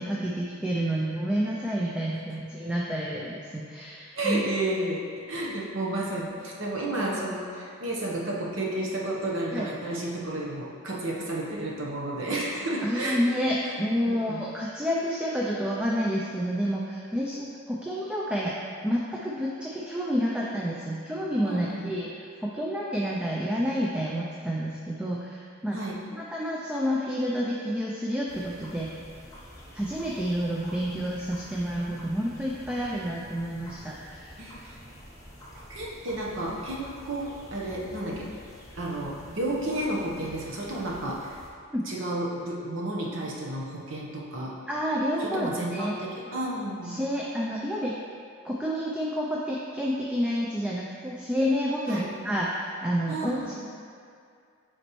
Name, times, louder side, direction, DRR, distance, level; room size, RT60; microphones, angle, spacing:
voice 1, 0.0-4.4 9.5-9.7 12.8-18.6 18.8-25.8 26.1-28.9 29.7-34.4 41.7-41.8 44.7-45.9 46.9-48.0 48.4-53.6, equal, 5° right, -4 dB, 0.3 m, -29 dB
voice 2, 4.1-13.2 13.6-13.7 14.1-14.4 21.4-22.0 25.7-26.0 34.4-34.8 35.5-38.3 38.8-41.4 41.8-44.5 45.2-47.0 51.9-52.1 53.1-53.6, right 1 dB, 65° right, -4 dB, 1.0 m, -32 dB
sound 1, 28.3-41.5, equal, 15° left, 0.8 m, -47 dB
8.0 x 4.2 x 3.1 m, 2.3 s
head